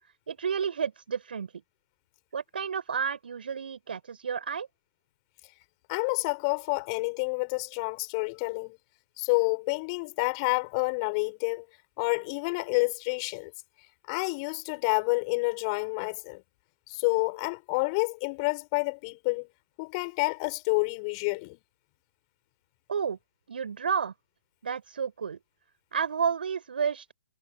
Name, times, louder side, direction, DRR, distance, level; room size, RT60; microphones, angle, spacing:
voice 1, 0.3-1.5 2.3-4.7 22.9-23.2 23.5-24.1 24.6-25.4 25.9-27.1, right 6 dB, 60° right, 4.4 m, -31 dB
voice 2, 5.9-8.8 9.2-11.6 12.0-13.5 14.1-16.4 16.9-19.5 19.8-21.6, left 30 dB, 30° left, 5.7 m, -29 dB
figure-of-eight pair, 125°, 6 cm